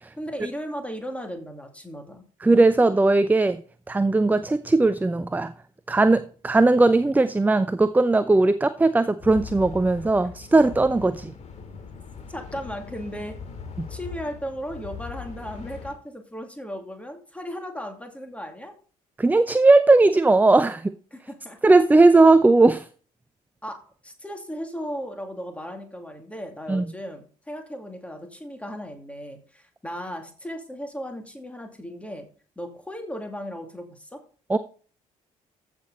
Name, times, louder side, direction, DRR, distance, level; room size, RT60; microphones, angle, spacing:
voice 1, 0.2-2.2 12.3-13.4 13.9-18.7 21.1-21.6 23.6-32.3 32.6-34.2, equal, 5° left, 2.6 m, -36 dB
voice 2, 2.4-3.6 3.9-5.5 5.9-11.3 13.8-13.9 19.2-20.9 21.6-22.9 26.7-26.9 34.5-34.6, right 2 dB, 10° right, 0.6 m, -18 dB
sound 1, 9.2-15.9, left 6 dB, 40° left, 2.4 m, -40 dB
14.5 x 6.1 x 4.0 m
figure-of-eight pair, 50°, 18 cm